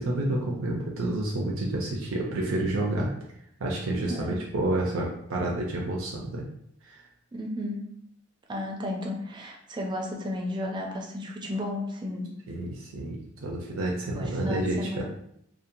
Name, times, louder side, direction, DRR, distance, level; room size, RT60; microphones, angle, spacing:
voice 1, 0.0-3.1 3.6-6.4 6.8-7.0 12.5-15.0, right 1 dB, 85° right, -2 dB, 0.5 m, -29 dB
voice 2, 7.3-7.8 8.5-12.3 14.1-15.0, left 1 dB, 20° right, 0 dB, 0.4 m, -33 dB
2.7 x 2.1 x 2.6 m, 0.72 s
head